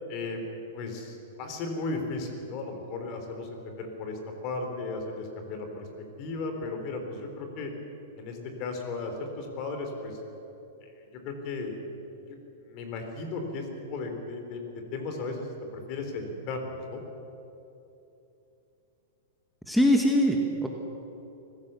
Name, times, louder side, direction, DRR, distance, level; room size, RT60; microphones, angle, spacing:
voice 1, 0.1-0.4 0.7-4.2 4.4-5.9 6.2-7.7 8.2-10.2 10.8-11.7 12.3-17.0, left 3 dB, 45° left, 4 dB, 4.0 m, -35 dB
voice 2, 19.7-20.7, equal, ahead, 1 dB, 1.7 m, -22 dB
24.5 x 15.0 x 7.1 m, 2.9 s
hypercardioid pair, 130°, 0 cm